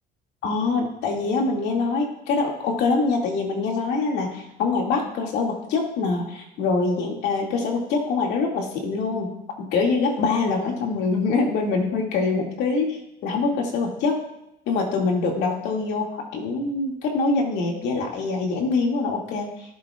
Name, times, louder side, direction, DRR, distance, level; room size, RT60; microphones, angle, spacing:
voice 1, 0.4-9.3 9.7-14.2 14.7-19.5, left 4 dB, 85° left, 0 dB, 2.4 m, -24 dB
17.0 x 7.5 x 2.5 m, 0.85 s
cardioid pair, 110°, 17 cm